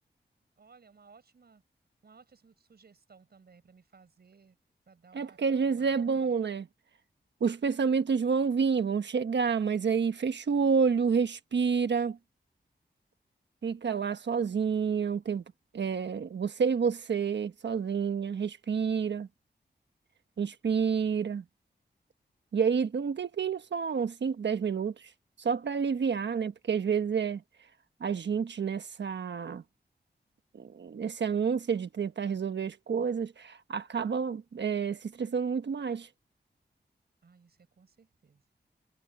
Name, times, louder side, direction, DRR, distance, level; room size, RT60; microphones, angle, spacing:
voice 1, 0.6-1.6 2.0-4.6 4.9-6.3 37.2-38.4, right 5 dB, 65° right, 6.2 m, -59 dB
voice 2, 5.1-6.7 7.4-12.2 13.6-15.4 15.7-19.3 20.4-21.4 22.5-24.9 25.4-27.4 28.0-29.6 30.5-36.1, right 6 dB, 85° right, 1.2 m, -29 dB
wide cardioid pair, 140°, 18 cm